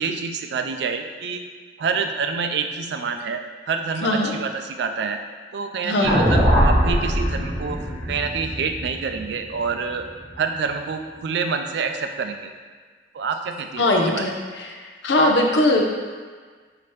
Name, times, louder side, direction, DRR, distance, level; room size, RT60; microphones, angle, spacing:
voice 1, 0.0-1.4 1.8-5.2 5.5-7.8 8.0-10.0 10.4-12.5 13.1-14.2, right 5 dB, 65° right, 6 dB, 0.3 m, -27 dB
voice 2, 4.0-4.3 5.8-6.2 13.8-14.8 15.0-15.8, left 1 dB, 75° left, 1 dB, 0.6 m, -20 dB
sound 1, 6.0-10.3, equal, 5° left, 1.0 m, -21 dB
5.7 x 2.8 x 3.1 m, 1.5 s
head